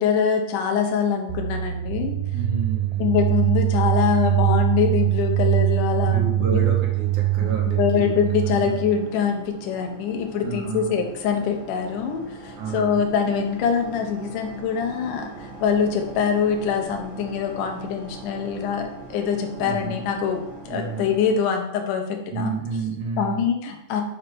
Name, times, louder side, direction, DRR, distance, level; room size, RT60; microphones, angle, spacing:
voice 1, 0.0-2.2 3.0-6.6 7.4-22.5 23.2-24.0, left 7 dB, 80° left, 3 dB, 2.4 m, -24 dB
sound 1, 1.3-9.0, right 15 dB, 90° right, 1.5 m, -23 dB
voice 2, 2.3-3.2 6.1-8.1 8.6-8.8 10.4-11.0 12.6-13.1 19.6-20.0 20.7-21.1 22.3-23.5, right 5 dB, 75° right, -1 dB, 2.3 m, -30 dB
sound 2, 4.2-21.3, right 2 dB, 50° right, 1.7 m, -43 dB
6.4 x 4.5 x 5.1 m, 0.78 s
omnidirectional pair, 3.7 m